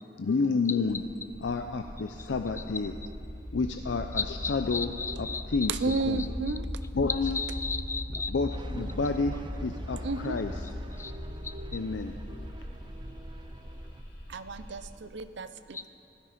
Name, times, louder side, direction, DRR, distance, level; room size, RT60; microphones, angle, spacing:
voice 1, 0.2-1.0 1.4-2.9 3.5-4.9 5.2-5.7 6.1-6.2 6.9-7.4 8.3-9.4 9.6-10.5 11.7-12.5, left 4 dB, 85° left, 6 dB, 0.5 m, -30 dB
sound 1, 0.8-14.8, equal, 55° left, 3.1 m, -39 dB
voice 2, 4.1-6.6 7.1-8.6 11.0-11.1 11.4-11.5 15.7-15.9, left 4 dB, 15° left, 11 dB, 0.4 m, -36 dB
voice 3, 5.7-6.7 10.0-10.4 11.1-11.9 14.3-15.9, right 3 dB, 75° right, 12 dB, 0.6 m, -34 dB
sound 2, 8.5-14.0, right 1 dB, 25° right, 0.7 m, -46 dB
16.0 x 12.5 x 5.1 m, 2.6 s
head